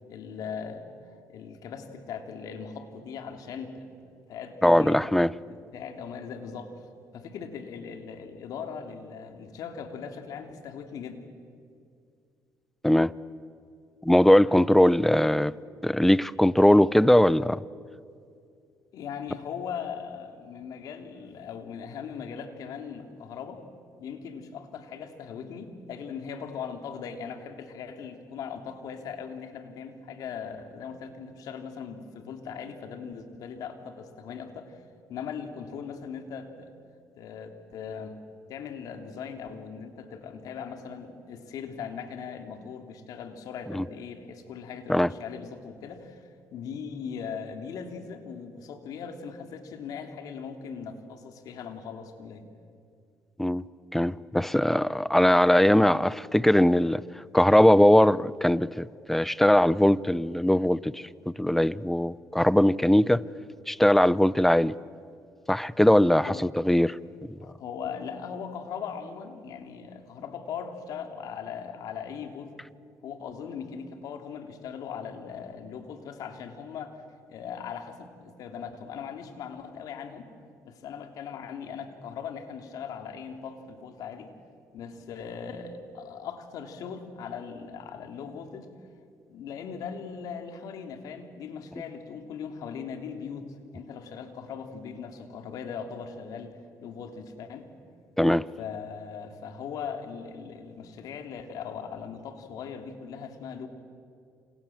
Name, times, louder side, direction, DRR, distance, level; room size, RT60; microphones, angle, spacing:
voice 1, 0.1-0.8 1.3-5.1 5.7-6.8 7.1-11.3 18.9-23.6 24.0-34.8 35.1-36.7 37.1-38.2 38.5-52.4 66.2-66.5 67.4-72.5 73.0-77.0 77.3-80.3 80.6-84.3 84.7-88.7 89.3-97.7 98.6-103.7, left 6 dB, 75° left, 6 dB, 3.3 m, -39 dB
voice 2, 4.6-5.3 12.8-13.1 14.0-15.5 15.8-17.6 43.7-43.8 44.9-45.1 53.4-53.6 53.9-57.0 57.3-63.2 63.7-64.7 65.5-67.0 98.2-98.5, left 1 dB, 5° left, 19 dB, 0.7 m, -20 dB
29.0 x 27.5 x 7.5 m, 2.4 s
cardioid pair, 85°, 6 cm